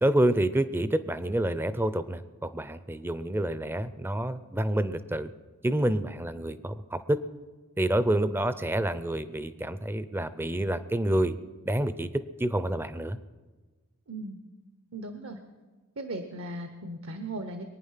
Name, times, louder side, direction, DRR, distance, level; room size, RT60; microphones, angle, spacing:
voice 1, 0.0-5.3 5.6-7.2 7.8-11.4 11.6-12.1 12.4-13.2, right 1 dB, 10° right, 13 dB, 0.5 m, -28 dB
voice 2, 14.1-14.4 14.9-15.4 16.0-17.6, right 1 dB, 65° right, 7 dB, 1.0 m, -37 dB
23.0 x 9.4 x 5.7 m, 1.3 s
head